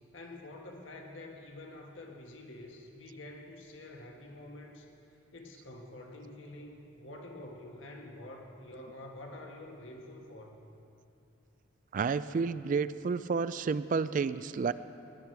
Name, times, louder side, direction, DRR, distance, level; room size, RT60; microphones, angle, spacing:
voice 1, 0.1-4.9 5.3-10.6, left 1 dB, 75° left, 0 dB, 1.7 m, -47 dB
voice 2, 11.9-14.7, right 5 dB, 40° right, 15 dB, 0.3 m, -30 dB
17.5 x 10.5 x 4.7 m, 2.6 s
head